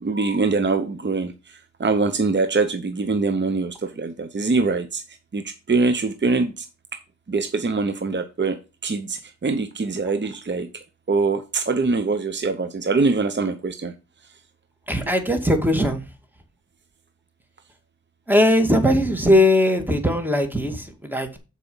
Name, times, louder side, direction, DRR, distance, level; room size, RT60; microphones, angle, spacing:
voice 1, 0.0-5.0 5.3-6.7 7.3-14.0, right 4 dB, 40° right, 0.8 m, -23 dB
voice 2, 14.9-16.0 18.3-21.4, left 1 dB, 5° right, 2.0 m, -19 dB
6.8 x 4.9 x 5.6 m
cardioid pair, 55°, 30 cm